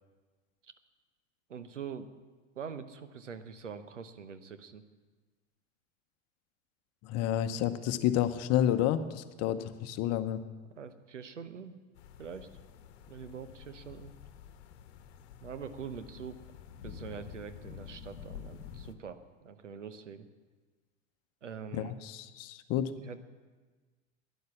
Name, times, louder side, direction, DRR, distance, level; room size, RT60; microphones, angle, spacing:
voice 1, 1.5-2.1 2.5-4.8 10.7-11.8 12.2-12.5 13.1-14.1 15.4-16.4 16.8-20.3 21.4-21.9 23.0-23.2, right 6 dB, 90° right, 11 dB, 0.9 m, -44 dB
voice 2, 7.0-10.4 21.7-22.9, left 11 dB, 45° left, 11 dB, 1.0 m, -30 dB
sound 1, 12.0-18.9, left 8 dB, 65° left, 1.2 m, -49 dB
12.0 x 10.5 x 7.1 m, 1.4 s
hypercardioid pair, 85°, 35 cm